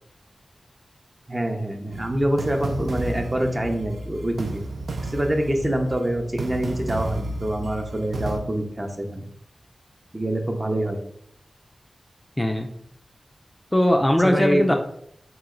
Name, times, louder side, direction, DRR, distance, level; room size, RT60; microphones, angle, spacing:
voice 1, 1.3-4.6 5.1-9.3 10.1-11.0 14.2-14.7, right 1 dB, 25° right, 3 dB, 0.6 m, -25 dB
sound 1, 1.9-8.4, right 2 dB, 90° right, 0.3 m, -32 dB
voice 2, 12.4-12.7 13.7-14.7, left 1 dB, 15° left, 3 dB, 0.3 m, -20 dB
3.0 x 2.9 x 3.7 m, 0.69 s
wide cardioid pair, 80°, 0 cm